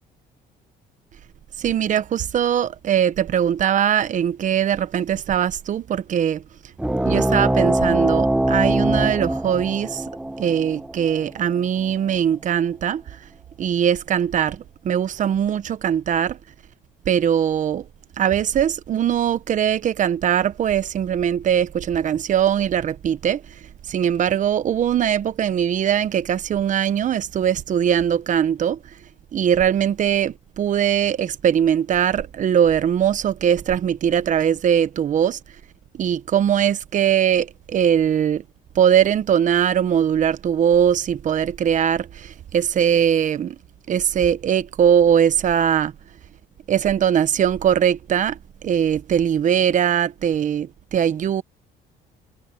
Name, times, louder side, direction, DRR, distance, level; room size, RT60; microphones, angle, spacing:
voice 1, 1.6-6.4 7.1-10.0 10.4-13.0 13.6-16.4 17.1-17.8 18.2-23.4 23.9-28.8 29.3-35.4 35.9-38.4 38.7-43.5 43.9-45.9 46.7-51.4, right 9 dB, 50° right, 1.1 m, -21 dB
sound 1, 6.8-11.9, right 1 dB, 5° right, 1.0 m, -22 dB
cardioid pair, 110°, 17 cm